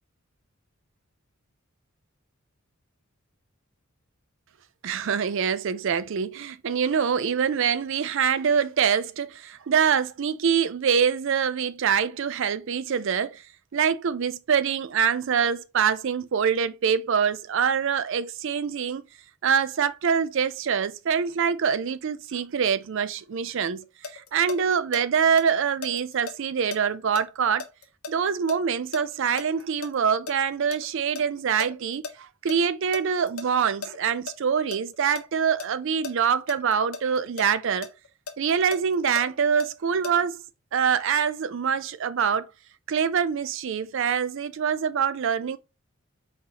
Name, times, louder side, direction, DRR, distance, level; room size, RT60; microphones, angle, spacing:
voice 1, 4.8-13.4 13.7-19.0 19.4-23.8 24.1-27.6 28.1-37.9 38.4-40.4 40.7-42.4 42.9-45.6, right 7 dB, 60° right, 0.4 m, -25 dB
sound 1, 23.7-25.0 25.4-29.9 30.3-32.1 32.5-32.6 32.9-34.3 34.7-35.2 35.6-37.5 37.8-40.1, left 4 dB, 80° left, 0.7 m, -37 dB
4.3 x 3.9 x 2.9 m
head